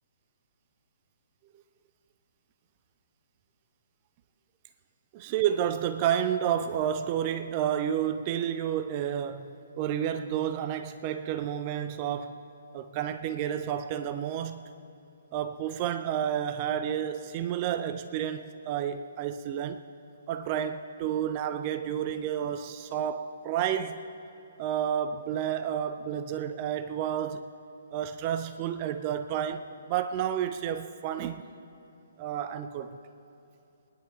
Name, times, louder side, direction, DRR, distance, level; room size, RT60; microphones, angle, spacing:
voice 1, 5.1-12.4 12.7-14.7 15.3-19.9 20.3-24.0 24.6-27.5 27.9-31.4 32.2-33.0, right 9 dB, 30° right, 0.5 m, -30 dB
23.0 x 10.5 x 3.4 m
figure-of-eight pair, 125°, 0 cm